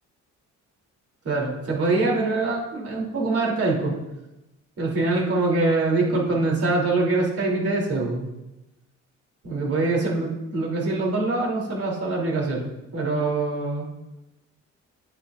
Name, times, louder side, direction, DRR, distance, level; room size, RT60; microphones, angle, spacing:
voice 1, 1.2-3.9 4.8-8.3 9.4-13.9, right 3 dB, 50° right, -2 dB, 3.3 m, -24 dB
11.0 x 8.8 x 2.6 m, 0.97 s
cardioid pair, 90°, 30 cm